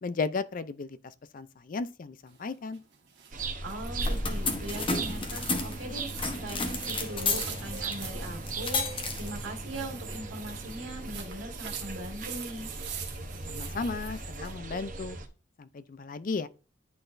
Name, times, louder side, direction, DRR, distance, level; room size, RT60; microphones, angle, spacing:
voice 1, 0.0-2.8 13.5-15.2 15.6-16.5, left 4 dB, 45° left, 0.4 m, -35 dB
sound 1, 2.3-14.6, right 8 dB, 60° right, 1.5 m, -45 dB
sound 2, 3.3-15.3, right 2 dB, 45° right, 0.9 m, -38 dB
voice 2, 3.6-12.7, right 1 dB, 80° right, 2.1 m, -40 dB
sound 3, 3.8-11.2, left 3 dB, 25° left, 1.0 m, -34 dB
11.0 x 4.0 x 2.6 m
head